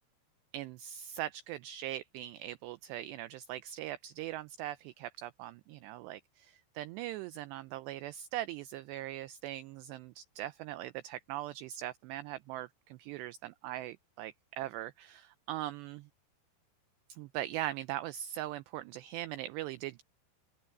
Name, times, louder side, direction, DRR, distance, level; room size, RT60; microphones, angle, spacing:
voice 1, 0.5-16.1 17.2-20.0, right 14 dB, 90° right, 2.4 m, -41 dB
open air
omnidirectional pair, 5.6 m